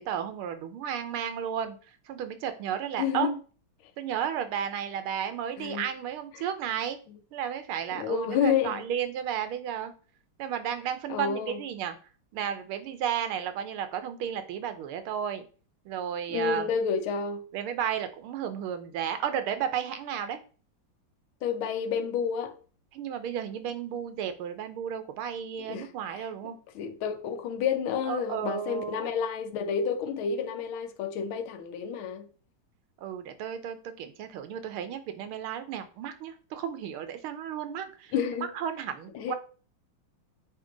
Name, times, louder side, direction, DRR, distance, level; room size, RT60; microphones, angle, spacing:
voice 1, 0.0-1.8 2.1-3.3 4.0-7.0 7.3-9.9 10.4-12.0 12.3-15.5 15.9-16.7 17.5-20.4 22.9-26.6 28.1-29.2 33.0-38.1 38.5-39.4, right 9 dB, 90° right, 1.7 m, -33 dB
voice 2, 3.0-3.3 5.6-5.9 7.9-8.8 11.1-11.6 16.3-17.5 21.4-22.6 25.7-26.2 26.7-32.3 38.1-38.5 39.1-39.4, left 7 dB, 80° left, 1.6 m, -30 dB
8.3 x 2.9 x 3.8 m
omnidirectional pair, 2.3 m